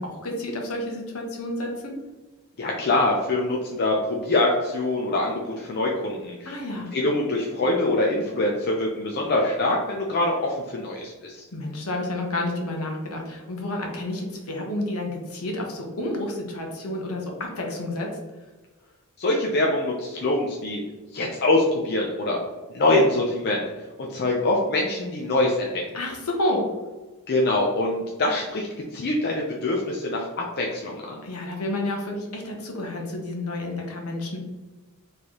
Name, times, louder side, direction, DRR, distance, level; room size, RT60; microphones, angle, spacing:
voice 1, 0.0-1.9 6.4-6.9 11.5-18.2 25.9-26.7 31.2-34.4, left 1 dB, 70° left, 0 dB, 1.0 m, -30 dB
voice 2, 2.6-6.6 6.9-11.4 19.2-20.8 21.1-22.4 22.7-23.6 24.0-25.8 27.3-31.2, left 2 dB, 45° left, -1 dB, 0.5 m, -24 dB
4.4 x 3.3 x 2.9 m, 1.2 s
head